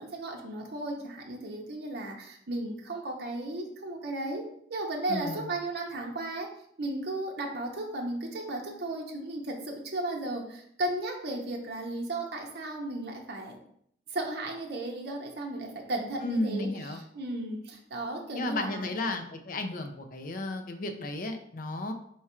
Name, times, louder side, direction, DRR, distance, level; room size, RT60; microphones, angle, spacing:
voice 1, 0.0-6.5 6.8-13.5 14.1-18.9, right 2 dB, 60° right, 1 dB, 0.7 m, -35 dB
voice 2, 5.1-5.5 16.2-17.0 18.3-21.9, left 2 dB, 50° left, 6 dB, 0.5 m, -33 dB
4.4 x 2.4 x 4.2 m, 0.68 s
head